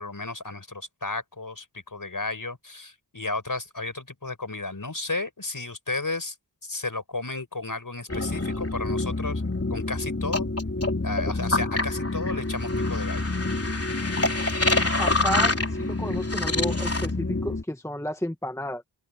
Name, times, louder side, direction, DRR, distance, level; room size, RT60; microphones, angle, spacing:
voice 1, 0.0-6.3 6.6-9.4 9.7-10.5 11.0-13.3, left 3 dB, 50° left, 5.3 m, -33 dB
sound 1, 8.1-17.6, left 2 dB, 35° left, 3.6 m, -26 dB
voice 2, 15.0-18.8, left 1 dB, 5° left, 1.4 m, -32 dB
open air
wide cardioid pair, 70°, 43 cm